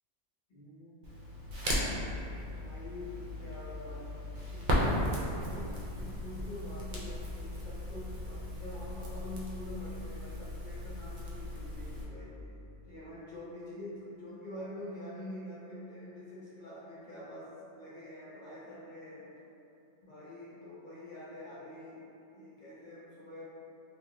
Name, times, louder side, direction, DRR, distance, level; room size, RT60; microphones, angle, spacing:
voice 1, 0.5-1.2 2.6-4.1 4.5-12.4 12.9-17.5 17.7-19.3 20.0-22.0 22.3-23.4, left 1 dB, 45° left, -8 dB, 1.0 m, -46 dB
Crackle, 1.0-12.0, left 1 dB, 50° right, 0.5 m, -36 dB
2.7 x 2.3 x 3.6 m, 2.9 s
omnidirectional pair, 1.2 m